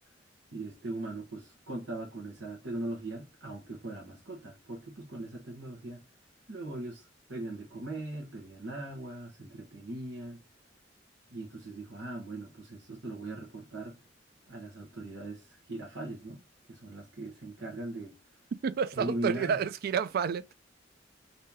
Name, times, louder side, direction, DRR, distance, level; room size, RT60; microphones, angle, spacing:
voice 1, 0.5-6.0 6.5-10.4 11.3-14.0 14.5-16.4 16.7-18.2 18.9-19.6, right 2 dB, 80° right, 1.1 m, -40 dB
voice 2, 18.6-20.5, right 6 dB, 55° right, 0.3 m, -30 dB
3.0 x 2.7 x 3.4 m
head